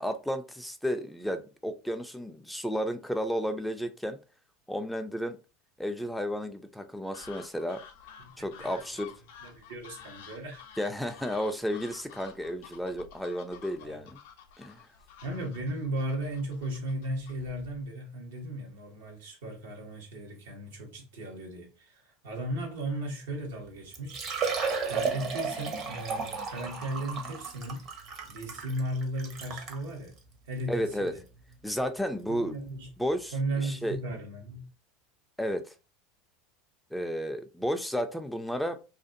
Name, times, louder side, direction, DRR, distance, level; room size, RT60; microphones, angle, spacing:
voice 1, 0.0-4.2 4.7-5.4 5.8-7.8 8.4-9.1 10.8-14.1 14.6-14.8 30.7-31.1 31.6-32.5 33.0-33.3 33.6-34.0 35.4-35.7 36.9-38.8, equal, 5° left, 0.4 m, -32 dB
sound 1, 7.1-17.9, left 8 dB, 75° left, 0.5 m, -51 dB
voice 2, 8.2-8.8 9.4-10.6 13.8-14.1 15.2-24.5 24.9-27.9 28.3-30.2 30.5-31.2 32.3-32.9 33.3-34.7, right 1 dB, 80° right, 1.0 m, -36 dB
Liquid, 23.5-23.6 23.9-29.8 30.5-30.6 31.1-31.2 32.8-32.9 33.1-33.2, right 5 dB, 45° right, 0.8 m, -34 dB
2.5 x 2.4 x 2.6 m
hypercardioid pair, 90°, 0 cm